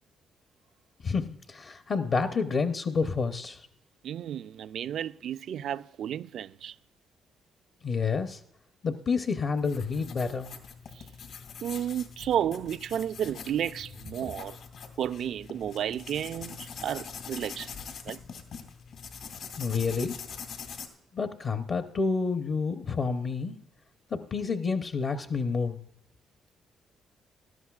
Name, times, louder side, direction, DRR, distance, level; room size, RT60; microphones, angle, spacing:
voice 1, 1.0-3.6 7.8-8.4 8.8-10.5 19.6-20.2 21.1-23.6 24.1-25.8, left 4 dB, 55° left, 0.8 m, -29 dB
voice 2, 4.0-6.8 10.9-11.1 11.6-14.6 15.0-17.8 18.0-18.2, right 10 dB, 70° right, 0.3 m, -32 dB
sound 1, 9.6-20.9, left 6 dB, 75° left, 2.1 m, -43 dB
17.0 x 13.0 x 2.4 m
cardioid pair, 90°, 0 cm